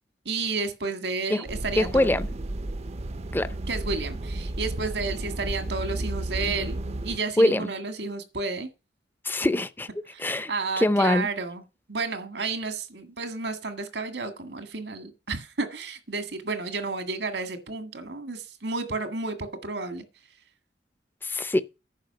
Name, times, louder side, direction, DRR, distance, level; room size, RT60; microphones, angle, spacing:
voice 1, 0.3-2.1 3.7-6.8 7.0-8.7 10.1-10.2 10.5-11.6 11.9-20.0, right 3 dB, 80° right, 1.8 m, -31 dB
sound 1, 1.5-7.2, right 1 dB, 35° right, 0.5 m, -33 dB
voice 2, 1.8-2.3 3.3-3.5 7.4-7.7 9.2-9.9 10.2-10.5 10.8-11.3 21.2-21.6, left 1 dB, 10° left, 0.5 m, -23 dB
10.5 x 5.5 x 6.9 m
head